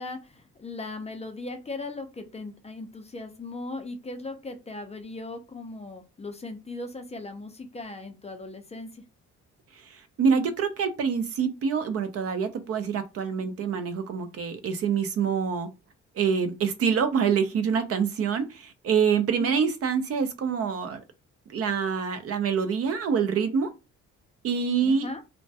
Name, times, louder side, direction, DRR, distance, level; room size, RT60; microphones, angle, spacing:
voice 1, 0.0-9.0 19.4-19.6 24.8-25.2, left 2 dB, 20° left, 0.4 m, -38 dB
voice 2, 10.2-15.7 16.2-21.0 21.5-23.7 24.4-25.1, right 6 dB, 50° right, 0.5 m, -26 dB
2.1 x 2.1 x 2.6 m
cardioid pair, 90°, 30 cm